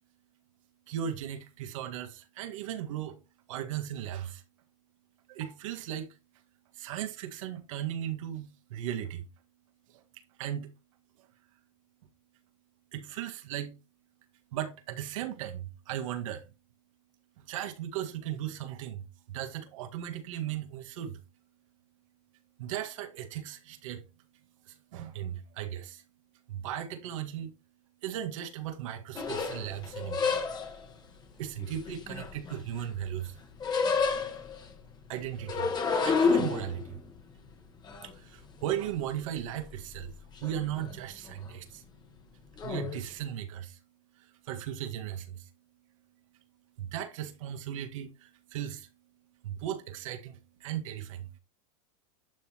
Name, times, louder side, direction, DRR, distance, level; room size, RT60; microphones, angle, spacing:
voice 1, 0.9-3.2 3.5-4.4 5.3-6.1 6.8-9.2 10.4-10.7 12.9-13.7 14.5-16.5 17.4-21.2 22.6-24.0 24.7-26.0 26.5-27.5 28.0-30.3 31.4-33.4 35.1-35.7 36.0-37.0 38.0-40.1 40.4-41.8 42.6-43.8 44.2-45.5 46.8-48.9 49.4-51.4, right 10 dB, 70° right, 1.7 m, -37 dB
sound 1, 29.2-30.9 31.6-32.9 33.2-34.7 35.3-39.1 39.4-40.1 40.4-40.9 41.3-41.5 42.6-43.0, left 5 dB, 25° left, 1.5 m, -30 dB
11.5 x 6.5 x 3.0 m
supercardioid pair, 120°, 17 cm